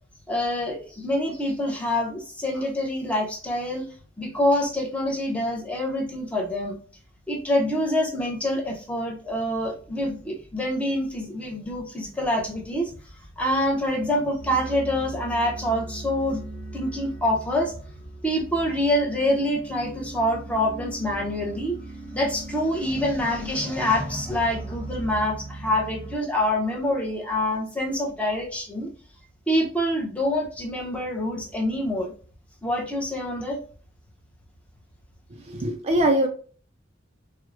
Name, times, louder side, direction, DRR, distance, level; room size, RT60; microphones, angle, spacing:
voice 1, 0.3-3.8 4.2-6.8 7.3-12.9 13.4-16.4 16.7-17.7 18.2-21.8 22.1-28.9 29.5-32.1 32.6-33.6, left 1 dB, 5° left, -1 dB, 0.6 m, -26 dB
sound 1, 14.4-26.2, right 2 dB, 75° left, 1.2 m, -39 dB
voice 2, 35.5-36.3, right 1 dB, 35° right, 4 dB, 0.3 m, -22 dB
4.4 x 2.0 x 2.4 m, 0.42 s
head